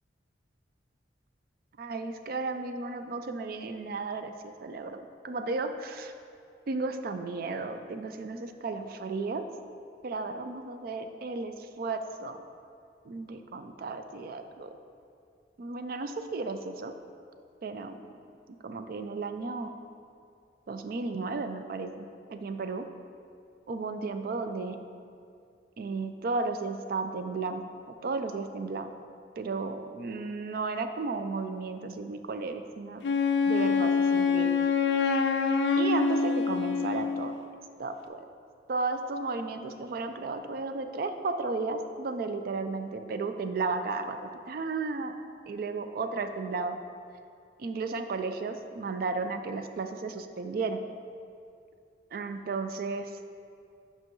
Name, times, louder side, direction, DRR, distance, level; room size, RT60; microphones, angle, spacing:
voice 1, 1.8-6.1 6.7-9.4 10.0-12.4 13.1-14.7 15.6-16.9 17.6-18.0 18.6-19.7 20.7-22.9 23.7-24.8 25.8-27.6 28.0-28.9 29.4-33.0 33.4-34.5 35.8-37.4 37.8-38.2 38.7-45.1 45.5-46.8 47.6-50.8 52.1-53.1, right 3 dB, 55° right, 8 dB, 0.4 m, -34 dB
Wind instrument woodwind instrument, 33.0-37.4, left 5 dB, 70° left, 0.4 m, -25 dB
7.5 x 5.5 x 3.1 m, 2.4 s
head